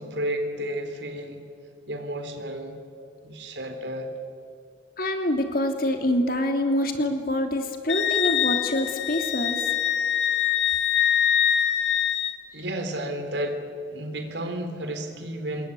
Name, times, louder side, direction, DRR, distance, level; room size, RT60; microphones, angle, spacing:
voice 1, 0.0-1.4 1.9-2.8 3.2-4.1 12.5-13.6 13.9-15.7, right 1 dB, 80° right, 6 dB, 3.8 m, -32 dB
voice 2, 5.0-9.7, left 1 dB, 55° left, 5 dB, 2.8 m, -25 dB
Wind instrument woodwind instrument, 7.9-12.4, left 9 dB, 90° left, 2.4 m, -24 dB
27.0 x 21.0 x 8.4 m, 2.5 s
head